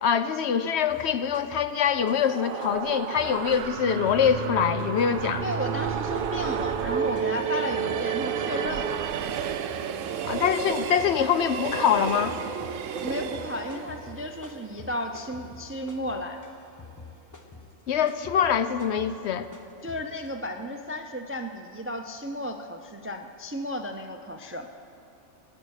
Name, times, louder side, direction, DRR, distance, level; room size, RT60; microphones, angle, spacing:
voice 1, 0.0-5.4 10.2-12.4 17.9-19.5, left 8 dB, 65° left, 11 dB, 0.8 m, -24 dB
sound 1, 0.9-2.4 2.6-20.3, left 4 dB, 20° left, 0.7 m, -47 dB
sound 2, 2.0-10.3, right 8 dB, 60° right, 0.6 m, -31 dB
voice 2, 5.4-9.0 13.0-16.4 19.8-24.7, equal, 20° right, 5 dB, 0.3 m, -33 dB
Train, 6.8-15.9 16.2-16.3, right 7 dB, 80° right, 1.0 m, -35 dB
18.0 x 9.8 x 6.4 m, 2.8 s
omnidirectional pair, 1.3 m